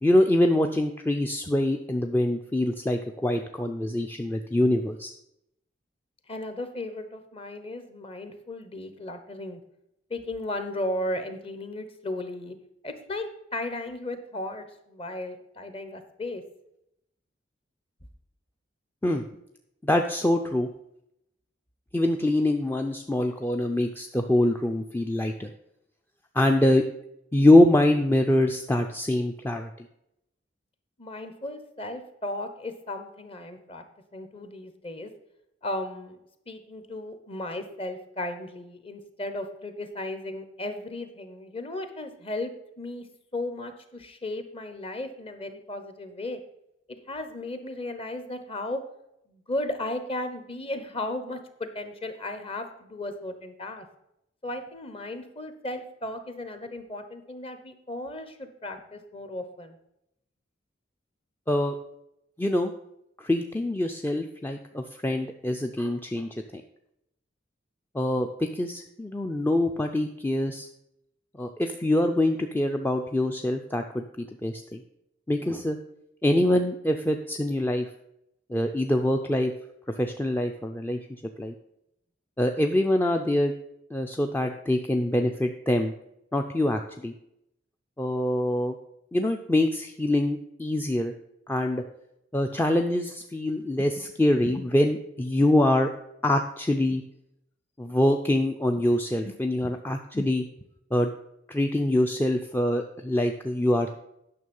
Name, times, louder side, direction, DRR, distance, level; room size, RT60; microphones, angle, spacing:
voice 1, 0.0-5.1 19.0-19.2 19.8-20.7 21.9-25.5 26.3-26.8 27.3-29.9 61.5-61.7 62.4-62.7 63.2-66.6 67.9-68.3 68.5-70.7 71.4-74.8 75.3-75.8 76.2-77.9 78.5-79.5 80.0-81.0 81.4-81.5 82.4-83.5 83.9-85.9 86.3-87.1 88.0-88.7 89.1-91.1 91.5-91.8 92.3-95.9 96.2-97.0 97.8-100.4 100.9-101.1 101.5-103.9, left 1 dB, 10° left, 4 dB, 0.4 m, -24 dB
voice 2, 6.3-9.6 10.1-12.6 12.8-16.4 31.0-33.8 34.1-35.1 35.6-36.2 36.5-43.1 43.3-46.4 47.1-48.8 49.3-53.9 54.4-59.8, left 1 dB, 30° left, 8 dB, 1.0 m, -35 dB
9.5 x 6.3 x 5.4 m, 0.81 s
head